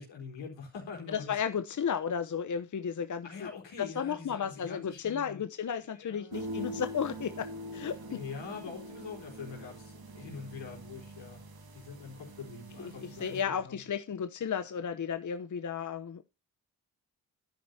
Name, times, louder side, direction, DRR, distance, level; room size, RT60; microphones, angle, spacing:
voice 1, 0.0-1.3 3.2-5.4 5.9-6.4 8.1-11.4 11.7-13.8, left 5 dB, 80° left, 4.3 m, -44 dB
voice 2, 1.1-3.3 3.8-8.2 12.8-16.2, left 7 dB, 40° left, 0.9 m, -34 dB
sound 1, 6.3-13.4, right 1 dB, 55° right, 2.0 m, -44 dB
12.0 x 9.3 x 2.8 m
supercardioid pair, 55°, 44 cm